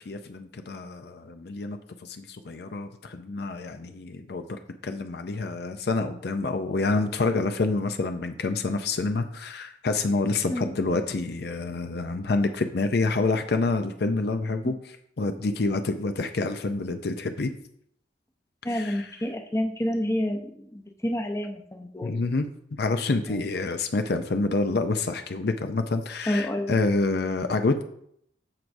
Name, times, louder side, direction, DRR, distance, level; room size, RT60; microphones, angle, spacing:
voice 1, 0.1-14.8 15.2-17.5 18.7-19.0 22.0-22.5 22.8-27.8, left 3 dB, 65° left, 7 dB, 0.5 m, -27 dB
voice 2, 10.5-11.0 18.6-22.2 23.3-23.4 26.3-26.7, left 1 dB, 15° left, 4 dB, 0.7 m, -29 dB
13.5 x 4.6 x 2.6 m, 0.70 s
head